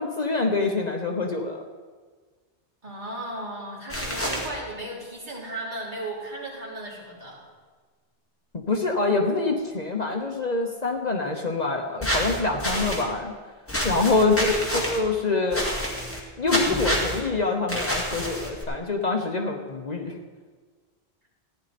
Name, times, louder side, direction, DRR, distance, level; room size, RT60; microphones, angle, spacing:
voice 1, 0.0-1.6 8.7-13.3 13.8-15.7 16.4-20.2, left 3 dB, 45° left, 2 dB, 1.1 m, -25 dB
voice 2, 2.8-7.4, right 1 dB, 50° right, -5 dB, 3.3 m, -36 dB
sound 1, 3.9-4.5 12.0-13.0 13.7-15.0 15.5-16.2 16.5-17.2 17.7-18.6, equal, 15° left, 2.1 m, -28 dB
15.0 x 10.0 x 4.2 m, 1.5 s
omnidirectional pair, 1.0 m